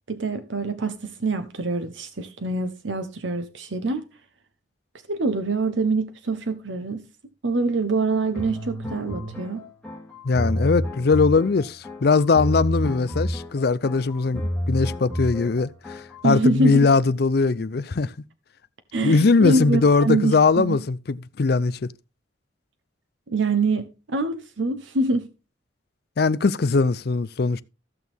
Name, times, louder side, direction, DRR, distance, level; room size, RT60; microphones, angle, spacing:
voice 1, 0.1-4.0 5.1-7.0 7.4-9.6 16.2-16.8 18.9-20.8 23.3-25.2, right 2 dB, 80° right, 1.0 m, -25 dB
sound 1, 8.3-16.3, equal, 5° left, 2.4 m, -29 dB
voice 2, 10.2-18.1 19.0-21.9 26.2-27.6, left 4 dB, 55° left, 0.5 m, -21 dB
15.0 x 6.3 x 3.5 m
head